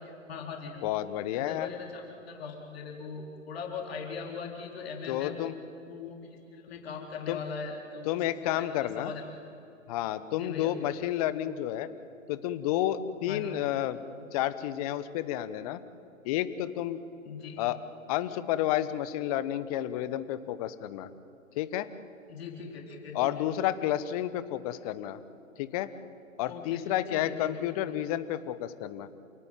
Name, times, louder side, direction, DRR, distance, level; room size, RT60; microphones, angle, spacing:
voice 1, 0.0-0.8 1.3-5.5 5.9-9.3 10.4-10.7 13.2-13.5 17.2-17.6 22.3-23.5 26.5-26.8 27.1-28.0, left 5 dB, 50° left, 1 dB, 3.7 m, -40 dB
voice 2, 0.8-1.7 5.1-5.5 7.3-7.4 8.1-9.1 9.9-11.9 12.3-14.0 14.3-15.8 16.2-17.0 17.6-17.8 18.1-21.1 21.6-21.9 23.1-25.2 25.6-25.9 26.4-29.1, left 12 dB, 30° left, 14 dB, 1.0 m, -31 dB
28.0 x 18.0 x 9.2 m, 2.8 s
figure-of-eight pair, 125°, 40 cm